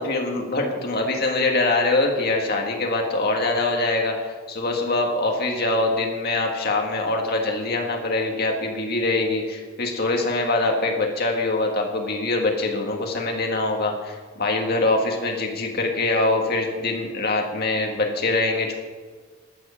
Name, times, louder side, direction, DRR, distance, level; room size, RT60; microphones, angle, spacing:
voice 1, 0.0-18.8, left 2 dB, 45° left, 1 dB, 1.8 m, -23 dB
12.0 x 7.5 x 7.0 m, 1.5 s
head